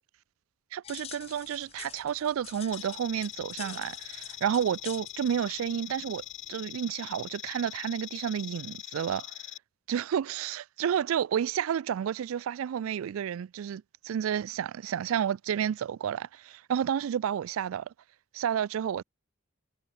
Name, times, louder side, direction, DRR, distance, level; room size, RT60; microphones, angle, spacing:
voice 1, 0.7-6.2 6.5-9.4 9.9-17.9 18.3-19.0, right 8 dB, 90° right, 0.3 m, -31 dB
sound 1, 0.8-6.6, left 10 dB, 30° left, 0.6 m, -48 dB
sound 2, 2.7-9.6, left 15 dB, 60° left, 1.0 m, -43 dB
head